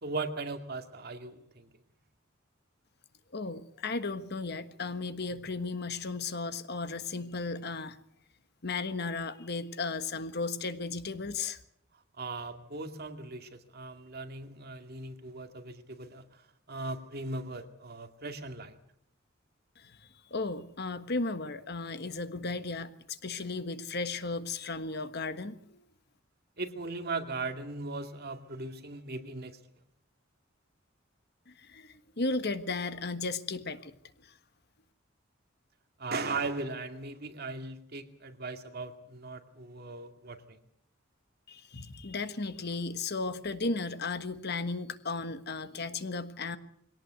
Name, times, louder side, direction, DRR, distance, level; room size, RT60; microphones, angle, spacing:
voice 1, 0.0-1.7 11.9-18.8 26.6-29.6 36.0-40.6, right 3 dB, 50° right, 6 dB, 2.3 m, -38 dB
voice 2, 3.3-8.0 8.6-11.6 19.8-20.0 20.3-25.8 31.5-34.0 34.2-34.3 41.5-46.6, left 3 dB, 55° left, 11 dB, 1.4 m, -35 dB
22.5 x 18.0 x 8.1 m, 0.70 s
head